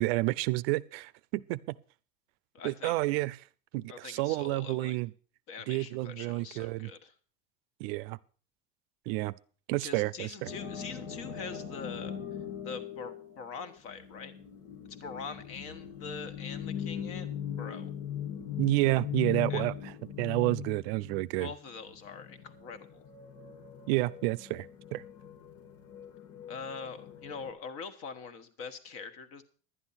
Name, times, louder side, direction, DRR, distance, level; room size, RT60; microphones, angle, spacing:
voice 1, 0.0-1.7 2.6-3.3 3.7-5.1 5.7-6.9 7.8-8.2 9.1-9.3 9.7-10.5 18.4-19.7 20.2-21.5 23.9-25.0, right 20 dB, 75° right, 0.5 m, -30 dB
voice 2, 2.5-3.0 3.9-5.0 5.5-7.1 9.8-12.2 12.6-14.3 14.9-17.3 17.6-17.9 19.5-19.6 21.4-23.1 26.5-29.4, left 5 dB, 45° left, 1.4 m, -43 dB
sound 1, 10.4-27.5, left 8 dB, 70° left, 2.0 m, -40 dB
11.5 x 9.9 x 5.7 m
cardioid pair, 165°, 31 cm